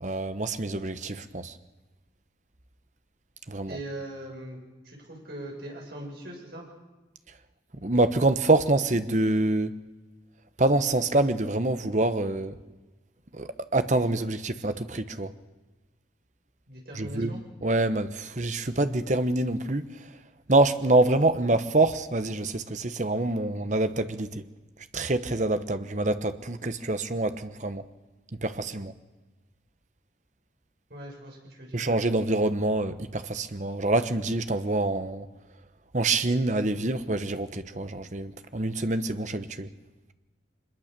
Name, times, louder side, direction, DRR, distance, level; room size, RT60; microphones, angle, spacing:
voice 1, 0.0-1.5 3.5-3.8 7.8-9.8 10.6-12.5 13.3-15.3 17.0-17.3 17.6-19.9 20.5-24.4 24.9-27.8 28.3-28.9 31.7-35.3 35.9-39.7, right 2 dB, 40° right, 10 dB, 1.0 m, -26 dB
voice 2, 3.7-4.6 4.8-6.6 16.7-17.4 30.9-31.8, right 1 dB, 60° right, -1 dB, 7.1 m, -40 dB
24.0 x 21.5 x 6.8 m, 1.1 s
head